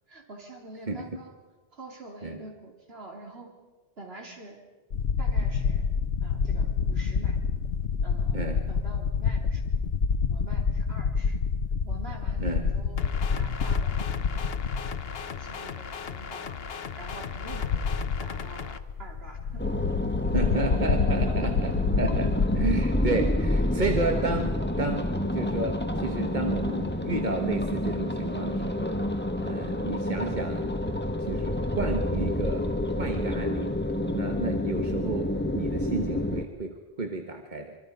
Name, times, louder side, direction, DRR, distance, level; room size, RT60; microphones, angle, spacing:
voice 1, 0.1-1.4 1.7-3.5 4.0-4.6 5.2-5.8 6.2-7.4 8.0-9.6 10.3-11.4 11.8-14.1 15.3-16.6 16.9-19.7 21.0-21.5, right 2 dB, 70° right, 1 dB, 3.9 m, -46 dB
voice 2, 0.9-1.2 2.2-2.4 8.3-8.6 12.4-12.7 20.3-29.0 29.4-30.7 31.2-32.7 33.0-33.7 34.1-37.8, right 3 dB, 45° right, 4 dB, 1.5 m, -32 dB
sound 1, 4.9-15.5 15.8-15.9 17.0-22.7, left 5 dB, 85° left, 1.2 m, -27 dB
sound 2, 13.0-18.8, left 6 dB, 70° left, 1.2 m, -38 dB
sound 3, 19.6-36.4, left 1 dB, 10° left, 1.1 m, -28 dB
26.0 x 24.0 x 5.4 m, 1.4 s
omnidirectional pair, 1.1 m